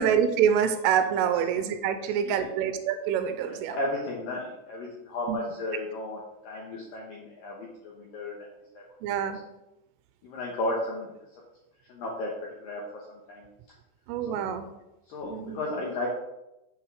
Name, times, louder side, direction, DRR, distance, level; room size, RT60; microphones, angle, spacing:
voice 1, 0.0-3.8 5.3-5.4 9.0-9.4 14.1-14.7 15.3-15.6, right 8 dB, 85° right, 9 dB, 3.2 m, -26 dB
voice 2, 1.9-2.5 3.4-8.5 8.7-8.8 9.2-9.3 10.2-11.2 11.9-12.3 12.6-13.5 14.3-14.5 15.1-16.1, left 2 dB, 90° left, -3 dB, 1.9 m, -34 dB
8.0 x 5.8 x 4.7 m, 0.93 s
omnidirectional pair, 5.7 m